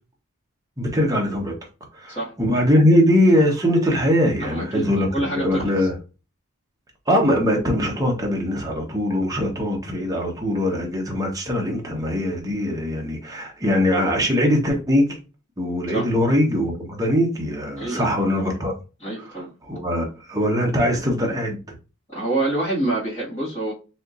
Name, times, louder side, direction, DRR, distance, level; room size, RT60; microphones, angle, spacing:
voice 1, 0.8-1.6 1.9-6.0 7.1-15.2 15.6-18.7 19.2-21.6, equal, 15° right, 0.8 m, -21 dB
voice 2, 4.4-4.8 5.1-5.7 15.9-16.1 17.8-18.1 19.0-19.5 22.1-23.7, right 2 dB, 25° left, 1.6 m, -26 dB
4.2 x 2.9 x 2.4 m
head